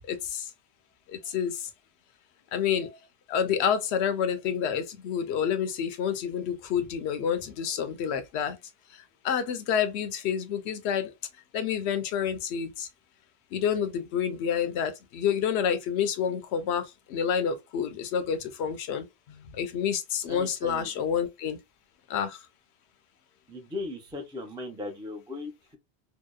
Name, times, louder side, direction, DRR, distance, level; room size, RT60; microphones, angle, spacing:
voice 1, 0.1-0.5 1.1-1.7 2.5-3.0 3.3-8.6 8.9-11.1 11.5-12.9 13.5-21.6 22.1-22.4, left 8 dB, 80° left, 0.8 m, -29 dB
voice 2, 20.3-20.9 23.5-25.8, left 2 dB, 5° right, 0.3 m, -38 dB
2.7 x 2.0 x 2.2 m
omnidirectional pair, 1.1 m